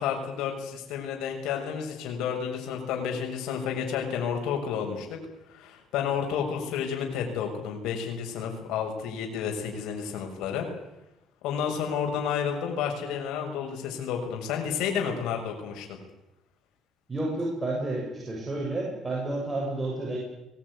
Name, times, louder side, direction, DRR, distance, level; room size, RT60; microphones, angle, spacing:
voice 1, 0.0-5.2 5.5-10.7 11.4-16.0, left 7 dB, 85° left, 2 dB, 6.0 m, -31 dB
voice 2, 17.1-20.2, right 2 dB, 20° right, -3 dB, 7.4 m, -30 dB
23.0 x 18.5 x 9.8 m, 0.91 s
cardioid pair, 120°, 0 cm